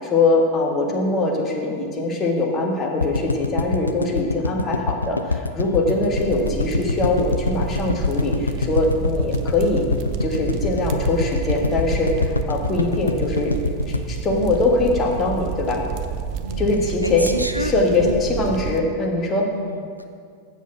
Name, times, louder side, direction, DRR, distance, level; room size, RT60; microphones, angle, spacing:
voice 1, 0.0-9.9 10.2-13.6 13.9-15.8 16.6-17.3 17.6-19.5, left 2 dB, 25° left, 0 dB, 1.5 m, -22 dB
sound 1, 3.0-15.2 15.5-15.6 15.7-15.8, left 3 dB, 80° left, 0.4 m, -25 dB
voice 2, 5.6-6.0 16.4-16.7 17.0-17.7 18.0-18.3 19.5-20.0, right 1 dB, 90° right, 6 dB, 0.6 m, -29 dB
sound 2, 6.1-18.8, right 8 dB, 40° right, 0.5 m, -30 dB
8.4 x 7.1 x 6.0 m, 2.2 s
figure-of-eight pair, 90°, 0 cm